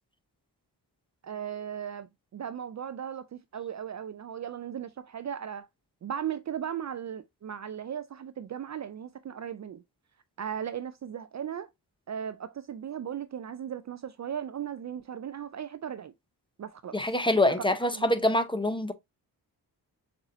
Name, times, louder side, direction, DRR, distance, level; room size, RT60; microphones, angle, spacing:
voice 1, 1.2-5.7 6.0-9.8 10.4-11.7 12.1-16.1 16.6-17.0 17.5-17.6 17.9-18.0, right 9 dB, 45° right, 0.4 m, -37 dB
voice 2, 16.9-18.9, left 1 dB, 10° left, 0.6 m, -25 dB
7.1 x 2.7 x 2.6 m
cardioid pair, 75°, 42 cm